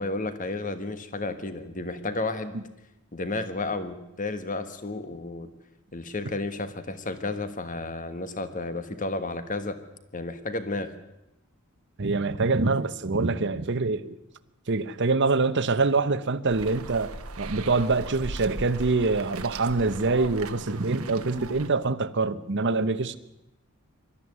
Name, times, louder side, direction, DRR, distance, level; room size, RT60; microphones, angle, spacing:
voice 1, 0.0-2.6 3.1-5.5 5.9-9.8 10.1-10.9, left 2 dB, 35° left, 10 dB, 1.4 m, -32 dB
voice 2, 12.0-14.2 14.7-23.2, right 3 dB, 55° right, 13 dB, 0.9 m, -25 dB
sound 1, 16.5-21.7, right 3 dB, 75° right, 1.2 m, -39 dB
21.0 x 13.0 x 9.4 m, 0.90 s
head